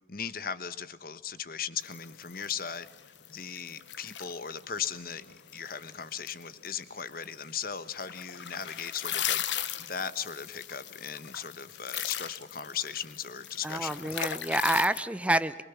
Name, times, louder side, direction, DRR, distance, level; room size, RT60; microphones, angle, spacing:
voice 1, 0.1-2.9 3.3-9.4 9.8-14.1, left 7 dB, 50° left, 13 dB, 1.3 m, -37 dB
sound 1, 1.8-15.0, left 10 dB, 75° left, 1.2 m, -38 dB
voice 2, 13.6-15.6, right 1 dB, 5° right, 13 dB, 0.8 m, -28 dB
26.0 x 23.5 x 7.2 m, 0.98 s
head